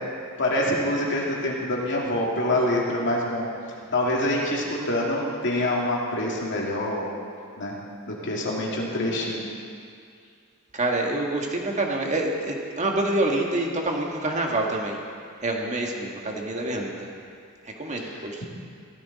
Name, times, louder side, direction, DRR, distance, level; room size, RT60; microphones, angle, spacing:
voice 1, 0.4-3.5 3.9-7.1 7.6-7.8 8.1-9.4 18.0-18.5, left 1 dB, 60° left, -3 dB, 2.5 m, -26 dB
voice 2, 10.7-15.0 15.4-17.1 17.6-18.4, right 2 dB, 35° right, 0 dB, 1.7 m, -27 dB
16.0 x 14.0 x 4.1 m, 2.3 s
head